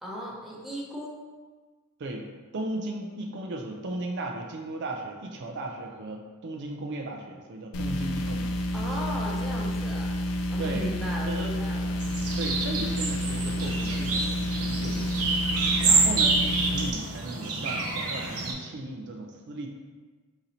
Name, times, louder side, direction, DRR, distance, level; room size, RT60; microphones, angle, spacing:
voice 1, 0.0-1.2 8.7-10.2 10.5-12.0, equal, ahead, -4 dB, 0.6 m, -36 dB
voice 2, 2.0-8.5 10.6-10.9 11.3-11.5 12.4-15.3 15.8-19.7, right 2 dB, 55° right, 2 dB, 0.4 m, -36 dB
sound 1, 7.7-16.9, left 1 dB, 70° left, 0.4 m, -30 dB
sound 2, 12.0-18.5, right 4 dB, 85° right, 0.7 m, -27 dB
3.9 x 2.8 x 4.2 m, 1.4 s
head